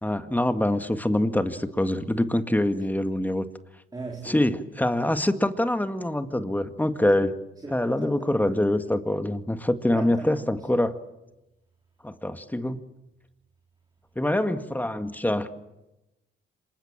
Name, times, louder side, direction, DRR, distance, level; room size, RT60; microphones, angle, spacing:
voice 1, 0.0-3.5 4.2-7.3 7.7-11.0 12.0-12.8 14.2-15.5, left 1 dB, 10° left, 2.0 m, -25 dB
voice 2, 3.9-4.4 7.6-8.4 9.9-10.8, right 3 dB, 20° right, 3.9 m, -39 dB
27.5 x 24.5 x 7.5 m
cardioid pair, 90°, 20 cm